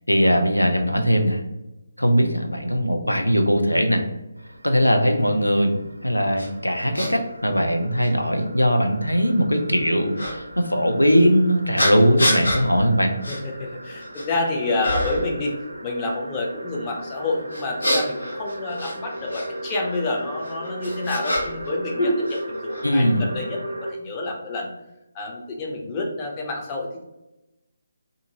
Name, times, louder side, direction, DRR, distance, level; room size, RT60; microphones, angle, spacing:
voice 1, 0.1-1.4 2.0-4.0 4.6-13.2 22.8-23.3, equal, 85° left, 5 dB, 0.4 m, -20 dB
sound 1, 4.4-23.9, right 1 dB, 75° right, 0.4 m, -38 dB
sound 2, 6.4-6.5 6.9-7.1 8.0-8.1 10.1-10.3 11.8-12.6 13.2-13.4 13.8-14.4 14.8-15.3 17.5-19.5 20.4-21.7 22.0-22.8, left 1 dB, 70° left, 1.1 m, -25 dB
voice 2, 13.3-24.7 25.1-27.0, left 2 dB, 20° left, 0 dB, 0.5 m, -29 dB
2.5 x 2.5 x 2.7 m, 0.94 s
figure-of-eight pair, 145°, 0 cm